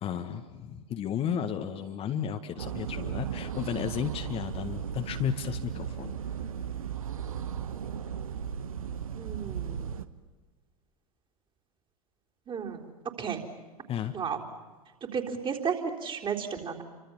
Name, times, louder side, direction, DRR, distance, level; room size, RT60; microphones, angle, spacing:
voice 1, 0.0-6.1 13.9-14.2, left 8 dB, 30° left, 7 dB, 1.7 m, -33 dB
sound 1, 2.6-10.1, right 8 dB, 70° right, 1.3 m, -36 dB
voice 2, 9.2-9.9 12.5-12.8 13.2-13.4 14.1-14.4 15.1-16.8, right 6 dB, 25° right, 2 dB, 3.9 m, -33 dB
29.5 x 25.0 x 7.3 m, 1.4 s
figure-of-eight pair, 85°, 19 cm